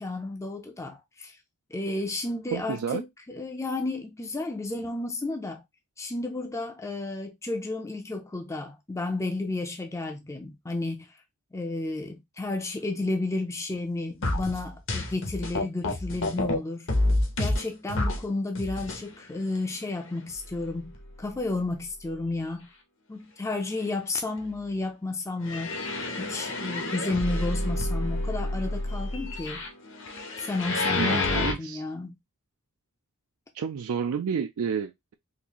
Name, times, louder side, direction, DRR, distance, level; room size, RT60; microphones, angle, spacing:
voice 1, 0.0-1.4 1.7-5.6 6.0-11.1 11.5-16.9 17.4-20.9 21.2-22.7 23.1-25.8 26.2-29.6 30.4-32.1, left 2 dB, 15° left, 0.4 m, -32 dB
voice 2, 2.5-3.0 31.0-31.8 33.5-35.1, right 6 dB, 75° right, 0.4 m, -30 dB
sound 1, 14.2-16.6 16.9-18.2 18.6-19.0 19.6-19.7 20.3-20.4 20.9-21.0 25.4-31.5, left 2 dB, 60° left, 0.9 m, -29 dB
3.9 x 2.5 x 2.9 m
head